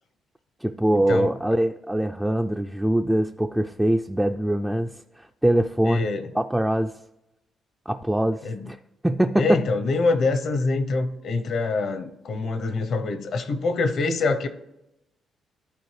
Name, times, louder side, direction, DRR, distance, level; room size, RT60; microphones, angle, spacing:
voice 1, 0.6-6.1 6.3-7.0 7.9-8.8 9.0-9.6, right 1 dB, 5° right, 4 dB, 0.3 m, -23 dB
voice 2, 5.9-6.3 8.4-8.6 9.3-14.5, left 3 dB, 65° left, 10 dB, 0.8 m, -25 dB
12.0 x 4.2 x 3.3 m, 0.89 s
cardioid pair, 90°, 0 cm